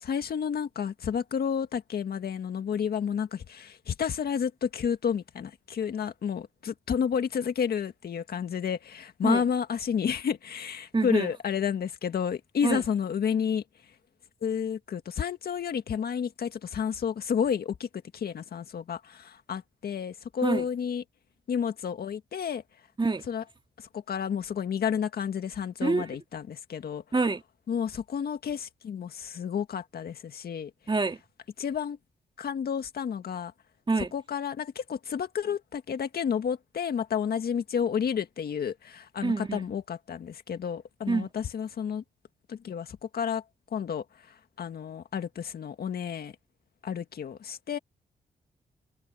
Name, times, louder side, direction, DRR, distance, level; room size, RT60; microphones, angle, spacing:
voice 1, 0.0-13.6 14.4-17.9 18.1-21.0 21.5-22.6 23.3-23.4 23.8-27.0 27.7-30.7 31.6-32.0 32.4-33.5 34.1-42.0 42.5-43.4 43.7-46.3 46.8-47.8, left 7 dB, 70° left, 1.9 m, -31 dB
voice 2, 10.9-11.3 12.6-12.8 20.4-20.7 23.0-23.2 25.8-26.1 27.1-27.4 30.9-31.2 33.9-34.1 39.2-39.7 41.1-41.3, right 3 dB, 30° right, 2.0 m, -26 dB
cardioid pair, 60°, 17 cm